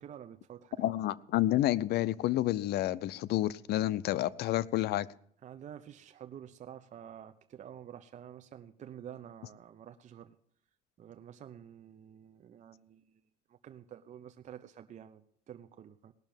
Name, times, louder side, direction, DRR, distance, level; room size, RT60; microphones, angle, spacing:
voice 1, 0.0-0.9 5.4-10.4 11.0-13.2 13.5-16.1, right 9 dB, 45° right, 0.7 m, -49 dB
voice 2, 0.8-5.1, left 14 dB, 75° left, 0.6 m, -29 dB
18.0 x 6.5 x 8.9 m
cardioid pair, 110°, 17 cm